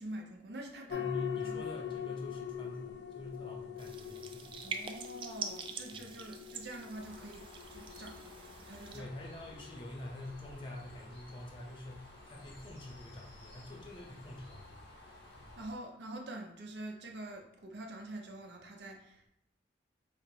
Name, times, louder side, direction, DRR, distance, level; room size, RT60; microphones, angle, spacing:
voice 1, 0.0-1.1 1.5-1.6 4.6-8.3 8.6-9.1 15.6-19.3, right 1 dB, 70° right, 1 dB, 0.7 m, -45 dB
sound 1, 0.9-15.7, left 9 dB, 70° left, 0.4 m, -45 dB
voice 2, 0.9-4.6 8.9-14.9, left 1 dB, 30° left, -1 dB, 0.6 m, -45 dB
sound 2, 3.8-9.0, right 5 dB, 30° right, 0.3 m, -45 dB
Bird, 6.9-15.7, left 1 dB, 85° left, 1.3 m, -54 dB
5.0 x 2.0 x 4.5 m, 0.81 s
head